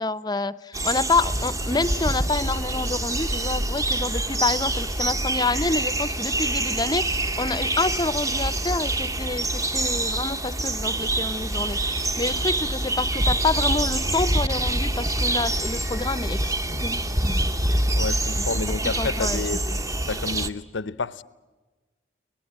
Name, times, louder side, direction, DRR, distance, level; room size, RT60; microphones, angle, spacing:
voice 1, 0.0-17.5 18.4-18.5 19.0-19.4 19.7-19.8, left 3 dB, 20° left, 0.7 m, -28 dB
sound 1, 0.7-20.5, right 1 dB, 15° right, 0.8 m, -26 dB
voice 2, 18.0-19.7 20.1-21.2, left 4 dB, 75° left, 0.8 m, -30 dB
24.5 x 19.0 x 8.7 m
head